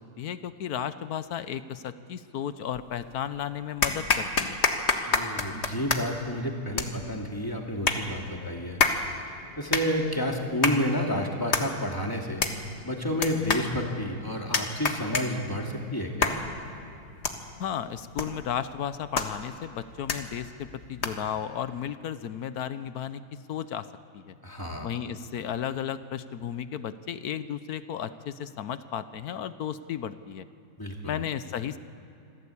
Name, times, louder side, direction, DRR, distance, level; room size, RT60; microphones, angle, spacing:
voice 1, 0.0-4.6 17.6-23.2 23.5-23.9 24.1-24.4 24.8-30.5 31.0-31.8, left 9 dB, 65° left, 13 dB, 1.0 m, -34 dB
sound 1, 2.7-3.3 3.8-21.4, left 4 dB, 35° left, 1.6 m, -31 dB
voice 2, 5.0-8.8 9.6-12.5 12.8-16.4 24.4-25.0 30.8-31.2, equal, 10° left, 1 dB, 2.4 m, -30 dB
26.5 x 16.5 x 8.5 m, 2.7 s
omnidirectional pair, 2.2 m